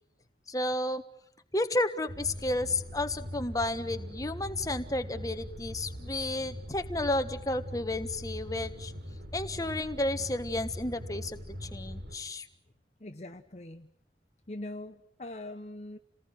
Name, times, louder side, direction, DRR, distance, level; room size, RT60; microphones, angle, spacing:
voice 1, 0.5-1.0 1.5-8.9 9.3-12.5, left 2 dB, 20° left, 9 dB, 1.4 m, -32 dB
sound 1, 2.1-12.2, equal, 80° right, 4.7 m, -41 dB
voice 2, 13.0-13.9 14.5-16.0, left 1 dB, 40° left, 7 dB, 1.0 m, -42 dB
28.5 x 19.5 x 9.3 m, 0.70 s
head